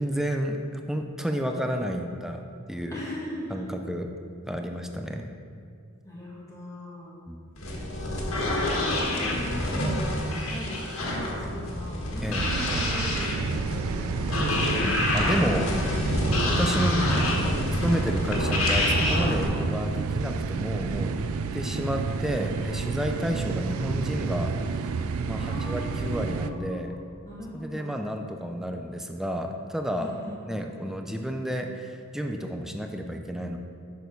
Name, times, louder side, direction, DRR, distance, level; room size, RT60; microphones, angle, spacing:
voice 1, 0.0-2.4 2.7-3.0 3.5-4.1 4.5-5.3 7.3-7.4 12.2-12.5 14.5-14.6 15.1-15.7 16.4-17.0 17.7-21.3 21.5-24.9 25.2-26.9 27.5-30.1 30.5-33.6, equal, ahead, 4 dB, 0.5 m, -31 dB
voice 2, 2.9-3.6 6.0-7.2 7.7-7.8 8.3-14.1 14.4-14.8 23.1-23.9 25.3-28.1 30.0-30.6, equal, 15° left, -6 dB, 1.7 m, -40 dB
sound 1, 7.6-19.4, left 1 dB, 75° left, 1.6 m, -27 dB
sound 2, 12.4-26.5, right 4 dB, 75° right, 0.4 m, -30 dB
6.9 x 6.3 x 5.2 m, 2.4 s
head